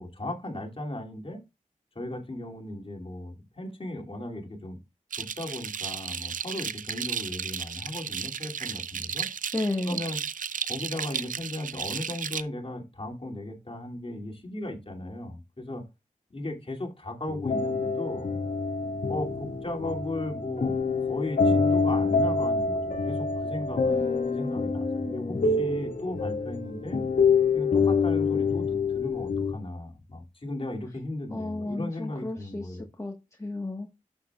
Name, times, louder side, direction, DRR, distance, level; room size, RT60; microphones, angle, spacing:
voice 1, 0.0-1.4 1.9-4.8 5.2-9.3 9.9-10.2 10.7-15.8 16.3-18.3 19.1-20.7 21.1-24.0 24.3-27.0 27.5-32.8, left 1 dB, 40° left, 2.6 m, -36 dB
sound 1, 5.1-12.4, right 7 dB, 80° right, 0.4 m, -34 dB
voice 2, 9.5-10.0 23.8-25.6 31.3-33.1 33.4-33.9, left 2 dB, 20° left, 1.4 m, -33 dB
sound 2, 17.3-29.5, left 4 dB, 80° left, 2.0 m, -26 dB
12.0 x 7.4 x 2.4 m
cardioid pair, 50°, 14 cm